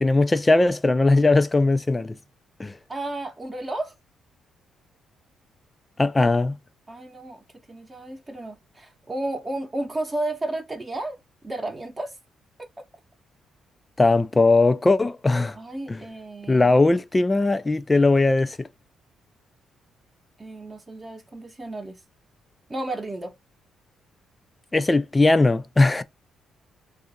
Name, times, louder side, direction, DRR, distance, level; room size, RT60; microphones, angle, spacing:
voice 1, 0.0-2.1 2.6-2.7 6.0-6.6 14.0-15.6 15.9-16.0 16.5-18.6 24.7-26.0, left 2 dB, 20° left, 0.4 m, -19 dB
voice 2, 2.9-3.9 6.9-12.2 12.8-12.9 15.5-16.7 20.4-22.0 22.7-23.4, right 2 dB, 25° right, 0.8 m, -33 dB
2.7 x 2.5 x 3.9 m
cardioid pair, 90°, 0 cm